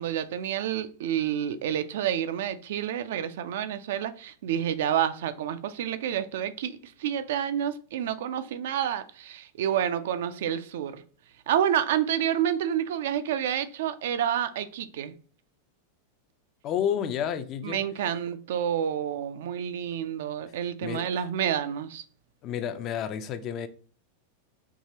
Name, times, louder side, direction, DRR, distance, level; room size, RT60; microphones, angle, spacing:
voice 1, 0.0-11.0 11.5-15.1 17.6-22.0, right 10 dB, 55° right, 0.3 m, -29 dB
voice 2, 16.6-17.9 20.8-21.2 22.4-23.7, left 9 dB, 35° left, 0.4 m, -30 dB
4.7 x 2.8 x 2.7 m
figure-of-eight pair, 90°, 0 cm